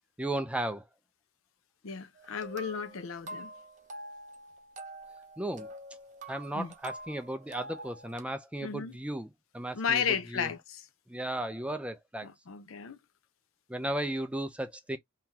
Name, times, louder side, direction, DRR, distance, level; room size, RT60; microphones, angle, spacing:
voice 1, 0.2-0.8 5.4-5.7 6.3-9.3 9.5-10.0 10.3-10.5 11.1-12.3 13.7-15.0, right 1 dB, 5° right, 0.4 m, -35 dB
voice 2, 1.8-3.5 6.5-6.7 8.6-9.0 9.7-10.9 12.2-13.0, left 7 dB, 70° left, 0.6 m, -34 dB
sound 1, 2.1-8.2, right 1 dB, 35° right, 0.8 m, -46 dB
3.7 x 2.8 x 2.9 m
head